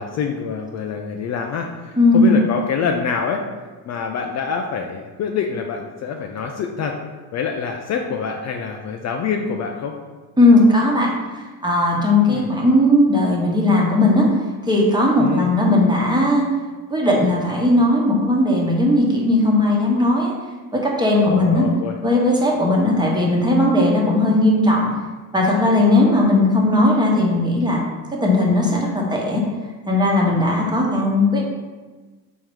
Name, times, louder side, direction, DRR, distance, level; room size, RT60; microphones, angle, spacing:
voice 1, 0.0-3.4 3.8-7.0 7.3-9.9 12.3-12.5 15.2-15.5 21.2-22.0, left 6 dB, 45° left, 3 dB, 0.5 m, -26 dB
voice 2, 2.0-2.3 10.4-11.1 11.6-14.3 14.7-16.4 16.9-20.3 20.7-21.6 22.0-24.9 25.3-27.8 28.1-29.4 29.9-31.4, left 1 dB, 10° right, -3 dB, 1.1 m, -17 dB
3.8 x 3.0 x 4.6 m, 1.3 s
supercardioid pair, 80°, 38 cm